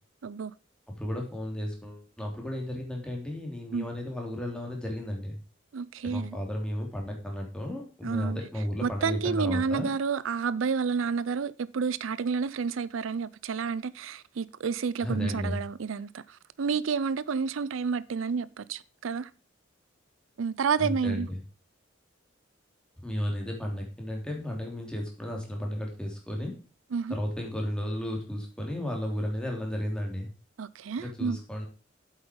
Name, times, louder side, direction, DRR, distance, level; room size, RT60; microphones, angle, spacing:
voice 1, 0.2-0.5 3.7-3.9 5.7-6.4 8.0-8.4 8.8-19.3 20.4-21.3 26.9-27.2 30.6-31.4, right 5 dB, 80° right, 0.5 m, -30 dB
voice 2, 1.0-5.4 6.0-9.9 15.0-15.6 20.8-21.4 23.0-26.5 27.1-30.3 31.0-31.7, equal, 5° left, 3.1 m, -33 dB
8.1 x 8.1 x 5.2 m
head